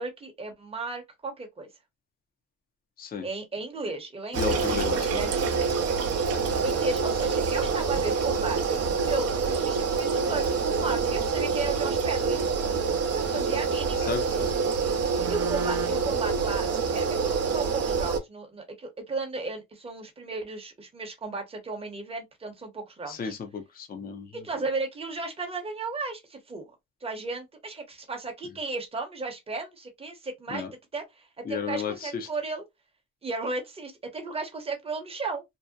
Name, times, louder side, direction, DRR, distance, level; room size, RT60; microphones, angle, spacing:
voice 1, 0.0-1.7 3.2-5.5 6.6-12.4 13.1-14.1 15.3-23.3 24.4-26.6 27.0-30.6 30.9-32.6 33.2-35.4, right 3 dB, 20° right, 0.8 m, -35 dB
voice 2, 4.3-5.3 14.0-14.5 23.1-24.3 30.5-30.7 31.5-32.3, left 6 dB, 30° left, 0.5 m, -33 dB
sound 1, 4.3-18.2, right 5 dB, 50° right, 0.6 m, -26 dB
2.7 x 2.1 x 2.2 m
cardioid pair, 120°, 32 cm